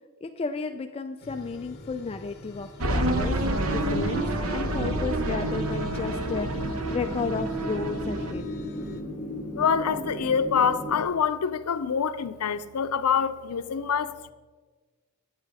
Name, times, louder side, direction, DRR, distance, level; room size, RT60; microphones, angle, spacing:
voice 1, 0.2-8.5, left 4 dB, 25° left, 0.3 m, -33 dB
sound 1, 1.2-9.0, left 1 dB, 45° left, 1.1 m, -46 dB
sound 2, 2.8-8.3, right 1 dB, 70° right, 1.0 m, -28 dB
sound 3, 4.5-11.0, left 1 dB, 10° right, 1.9 m, -36 dB
voice 2, 9.5-14.3, left 6 dB, 90° left, 0.5 m, -26 dB
10.5 x 8.8 x 4.8 m
head